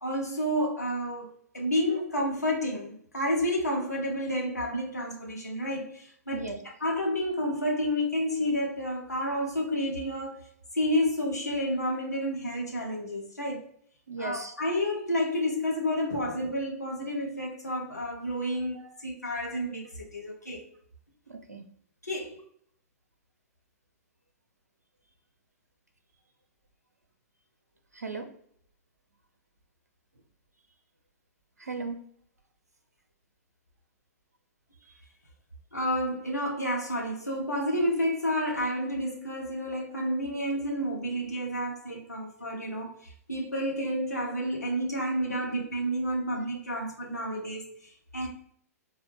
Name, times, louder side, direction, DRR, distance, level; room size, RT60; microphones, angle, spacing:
voice 1, 0.0-6.5 6.8-10.4 10.7-13.7 14.2-20.6 22.0-22.4 35.7-48.3, equal, 85° left, -2 dB, 1.1 m, -30 dB
voice 2, 14.1-14.5 21.3-21.6 27.9-28.3 31.6-32.0, right 3 dB, 80° right, 5 dB, 0.6 m, -36 dB
4.0 x 2.3 x 3.0 m, 0.63 s
figure-of-eight pair, 110°, 9 cm